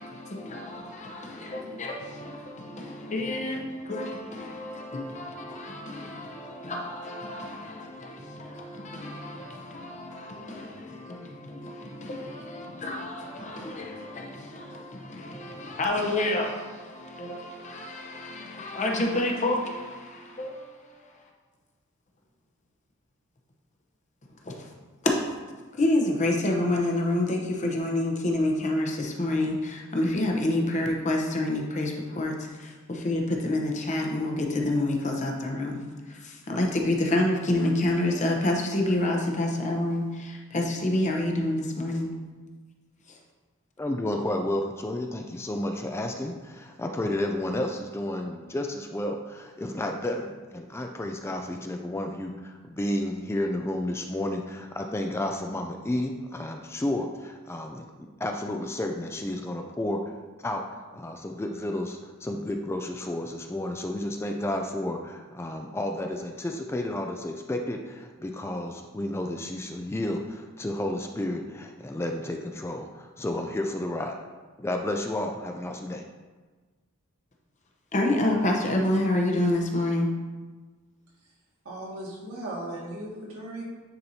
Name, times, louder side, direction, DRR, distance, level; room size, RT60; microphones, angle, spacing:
voice 1, 0.0-21.2 24.4-24.7 25.7-42.1 43.1-43.2 77.9-80.1, left 1 dB, 35° left, 0.8 m, -28 dB
voice 2, 43.8-60.0 60.4-60.6 60.9-74.2 74.6-76.0, left 1 dB, 10° left, 0.3 m, -31 dB
voice 3, 81.7-83.6, right 1 dB, 80° right, 2.0 m, -37 dB
9.6 x 4.4 x 2.7 m
head